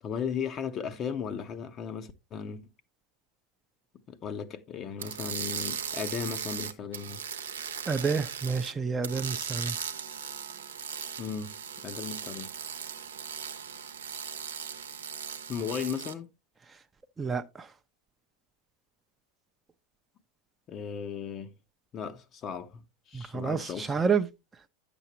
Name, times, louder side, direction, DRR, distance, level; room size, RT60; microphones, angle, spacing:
voice 1, 0.0-2.7 4.1-7.2 11.2-12.5 15.5-16.3 20.7-21.5 21.9-23.9, left 7 dB, 35° left, 0.8 m, -36 dB
sound 1, 5.0-8.7 9.0-16.1, right 7 dB, 80° right, 0.8 m, -38 dB
voice 2, 7.9-9.8 17.2-17.7 23.1-24.3, right 5 dB, 15° right, 0.6 m, -29 dB
9.8 x 7.0 x 2.9 m
figure-of-eight pair, 90°, 0 cm